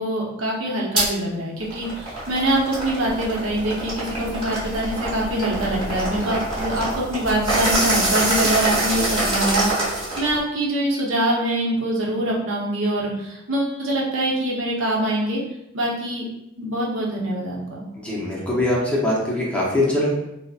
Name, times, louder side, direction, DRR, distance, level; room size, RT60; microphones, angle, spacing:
voice 1, 0.0-15.4 15.7-16.2 16.6-17.8, right 1 dB, 70° right, -3 dB, 0.7 m, -24 dB
sound 1, 1.0-1.1 1.6-10.4, right 1 dB, 25° right, 1.3 m, -25 dB
voice 2, 18.0-20.1, left 1 dB, 5° left, -6 dB, 0.6 m, -22 dB
3.8 x 2.0 x 2.3 m, 0.86 s
head